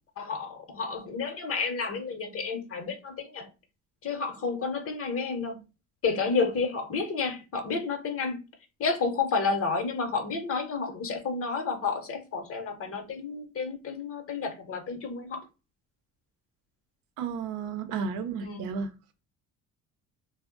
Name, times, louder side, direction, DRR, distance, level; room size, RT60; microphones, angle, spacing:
voice 1, 0.2-3.5 4.0-5.6 6.0-8.4 8.8-15.4 18.4-18.6, left 4 dB, 45° left, 0.8 m, -30 dB
voice 2, 17.2-18.9, right 5 dB, 80° right, 0.6 m, -32 dB
2.1 x 2.0 x 3.6 m
cardioid pair, 95°, 32 cm